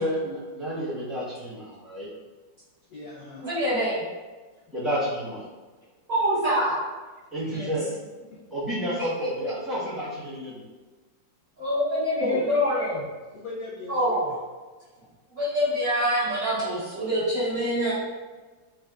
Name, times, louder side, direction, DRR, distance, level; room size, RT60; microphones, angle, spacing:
voice 1, 0.0-2.1 4.7-5.5 7.3-7.9 8.5-10.6, equal, ahead, -12 dB, 0.7 m, -30 dB
voice 2, 2.9-3.4 7.4-7.6 7.9-8.0 12.2-12.5 13.3-14.2, left 3 dB, 65° left, -6 dB, 0.9 m, -35 dB
voice 3, 3.4-4.0 6.1-6.8 7.5-7.8 9.0-9.5 11.6-13.0 13.9-14.3 15.3-17.9, equal, 55° right, -12 dB, 1.1 m, -25 dB
3.6 x 2.3 x 2.3 m, 1.3 s
omnidirectional pair, 2.0 m